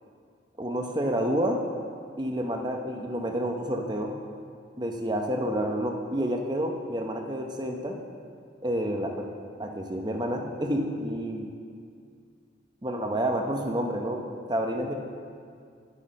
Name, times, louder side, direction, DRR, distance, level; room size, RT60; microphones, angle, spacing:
voice 1, 0.6-1.6 2.2-4.1 4.8-8.0 8.6-9.3 9.6-11.5 12.8-14.9, right 1 dB, 20° right, 3 dB, 0.7 m, -29 dB
10.5 x 6.3 x 5.5 m, 2.2 s
head